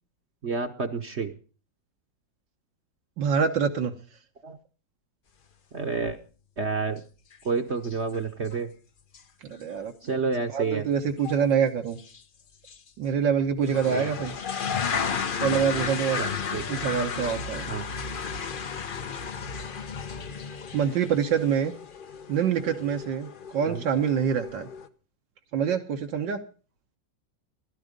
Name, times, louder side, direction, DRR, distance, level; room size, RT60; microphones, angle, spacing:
voice 1, 0.4-1.3 4.4-4.6 5.7-6.2 6.6-7.0 7.4-8.7 10.0-10.9 13.8-14.1 16.2-16.6 17.7-17.8 23.7-23.9, right 4 dB, 45° right, 5 dB, 1.0 m, -29 dB
voice 2, 3.2-3.9 9.4-9.9 10.5-12.0 13.0-14.3 15.4-16.2 16.7-17.7 20.7-21.7 22.3-24.7 25.5-26.4, right 7 dB, 80° right, 3 dB, 1.7 m, -25 dB
sound 1, 7.3-7.4 7.7-8.2 8.5-8.6 9.1-9.2 9.5-9.6 11.2-11.4 12.0-12.2 12.7-12.8 13.6-24.9, left 6 dB, 50° left, 0.6 m, -33 dB
15.0 x 12.0 x 5.2 m, 0.38 s
omnidirectional pair, 2.0 m